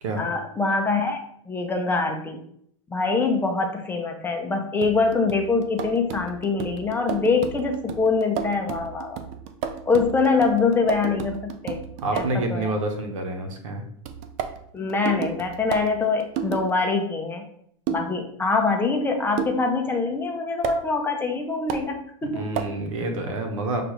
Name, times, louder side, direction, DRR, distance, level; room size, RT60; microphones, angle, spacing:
voice 1, 0.2-2.4 2.9-9.2 9.9-11.8 12.1-12.7 14.7-17.4 17.9-22.5, left 4 dB, 10° left, 3 dB, 0.5 m, -24 dB
sound 1, 4.8-12.5 14.1-16.7 17.9-18.2 19.4-19.7 20.6-20.8 21.7-21.9 22.6-22.8, right 7 dB, 40° right, 0.5 m, -32 dB
voice 2, 12.0-13.8 22.3-23.8, right 2 dB, 80° right, 4 dB, 0.9 m, -28 dB
6.2 x 2.4 x 3.1 m, 0.67 s
hypercardioid pair, 125°, 17 cm